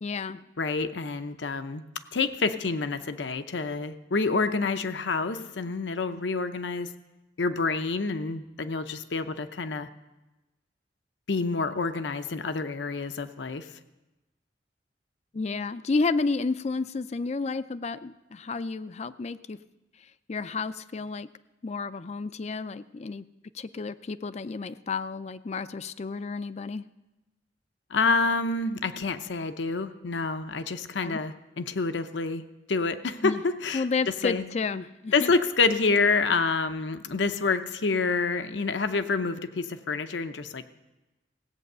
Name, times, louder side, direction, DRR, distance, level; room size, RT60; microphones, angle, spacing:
voice 1, 0.0-0.4 15.3-19.6 20.0-21.3 21.6-23.2 23.5-26.8 31.0-31.2 33.2-33.4 33.7-35.3, left 4 dB, 35° left, 14 dB, 0.4 m, -31 dB
voice 2, 0.6-1.8 2.1-6.9 7.4-9.9 11.3-13.7 27.9-32.4 32.7-33.9 34.2-34.4 35.1-40.7, left 4 dB, 75° left, 10 dB, 0.7 m, -28 dB
16.5 x 8.4 x 6.7 m, 1.0 s
head